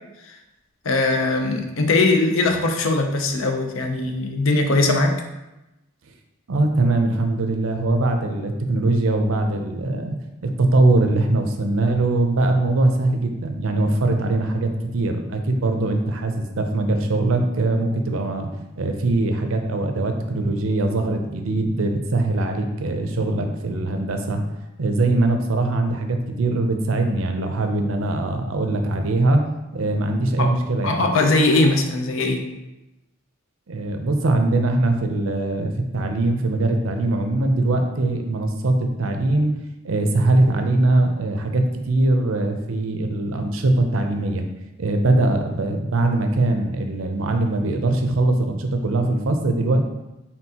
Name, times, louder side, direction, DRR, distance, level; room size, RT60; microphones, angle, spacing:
voice 1, 0.8-5.1 30.4-30.6 30.8-32.5, left 2 dB, 75° left, 4 dB, 0.6 m, -20 dB
voice 2, 6.5-10.2 10.4-18.5 18.7-24.4 24.8-29.4 29.7-31.0 33.7-39.5 39.8-44.4 44.8-49.8, right 2 dB, 80° right, 5 dB, 0.6 m, -21 dB
4.4 x 3.6 x 2.8 m, 0.97 s
head